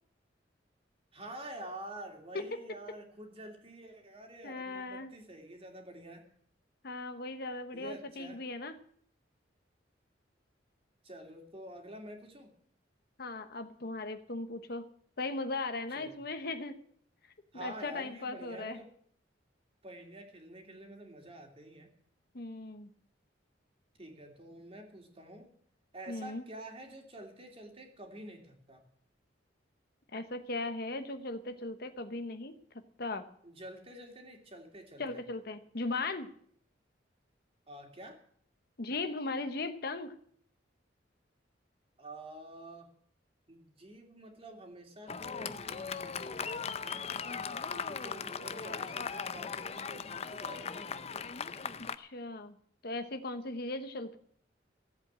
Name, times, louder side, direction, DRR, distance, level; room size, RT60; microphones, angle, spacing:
voice 1, 1.1-6.3 7.7-8.4 11.0-12.5 15.9-16.2 17.5-18.9 19.8-21.9 24.0-25.5 25.9-28.8 33.4-35.2 37.7-38.2 42.0-42.9 43.5-47.0 47.7-50.9, right 1 dB, 30° right, 3 dB, 2.6 m, -48 dB
voice 2, 4.4-5.1 6.8-8.7 13.2-14.8 15.2-16.8 17.5-18.8 22.3-22.9 26.1-26.4 30.1-32.5 33.0-33.2 35.0-36.3 38.8-40.1 52.0-52.6 52.8-54.2, left 2 dB, 55° left, 9 dB, 1.0 m, -38 dB
Fireworks, 45.1-52.0, left 6 dB, 35° left, 0.6 m, -38 dB
14.5 x 8.1 x 8.7 m, 0.63 s
head